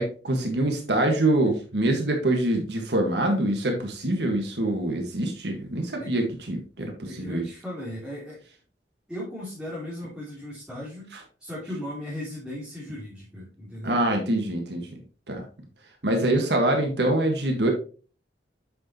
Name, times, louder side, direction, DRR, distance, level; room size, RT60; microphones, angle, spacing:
voice 1, 0.0-7.4 13.8-14.9 15.3-15.4 16.0-17.7, right 1 dB, 70° right, 3 dB, 1.7 m, -25 dB
voice 2, 6.0-6.3 6.8-8.4 9.1-11.1 11.4-14.0 16.2-16.6, left 1 dB, 5° right, -8 dB, 3.2 m, -37 dB
8.5 x 6.6 x 3.0 m, 0.37 s
head